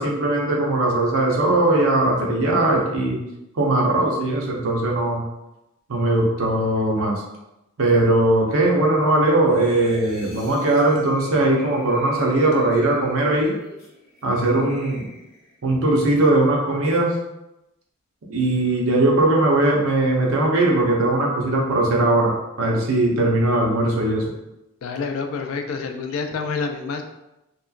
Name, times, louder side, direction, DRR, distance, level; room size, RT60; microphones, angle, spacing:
voice 1, 0.0-3.2 3.5-5.2 5.9-7.2 7.8-13.5 14.2-15.1 15.6-17.2 18.3-24.3, right 2 dB, 90° right, -2 dB, 0.7 m, -19 dB
sound 1, 9.5-15.6 16.0-16.2, equal, 50° left, 0.7 m, -42 dB
voice 2, 24.8-27.0, left 4 dB, 85° left, 6 dB, 0.3 m, -27 dB
2.9 x 2.2 x 2.4 m, 0.92 s
head